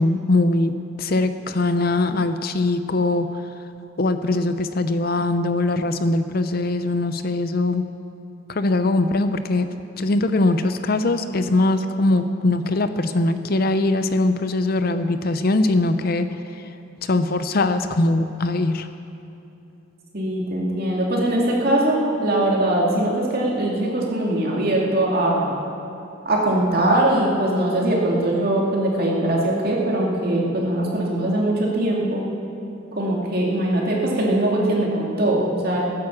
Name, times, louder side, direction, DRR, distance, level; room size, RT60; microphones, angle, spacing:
voice 1, 0.0-3.3 4.0-7.9 8.5-9.7 10.0-16.3 16.6-16.7 17.0-18.9, left 2 dB, 45° left, 9 dB, 0.6 m, -21 dB
voice 2, 20.1-25.6 26.2-32.2 32.9-35.8, right 1 dB, 45° right, -3 dB, 2.6 m, -21 dB
17.5 x 9.7 x 7.2 m, 2.8 s
head